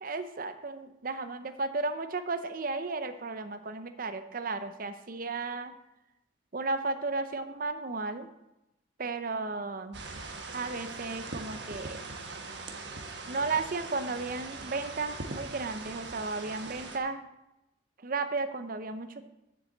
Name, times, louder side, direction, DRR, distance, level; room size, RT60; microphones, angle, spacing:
voice 1, 0.0-5.7 6.5-8.3 9.0-10.0 10.5-12.2 13.3-17.3 18.0-19.2, right 3 dB, 50° right, 9 dB, 0.7 m, -34 dB
sound 1, 9.9-17.0, right 3 dB, 65° right, 1.3 m, -41 dB
7.7 x 6.9 x 7.7 m, 0.89 s
head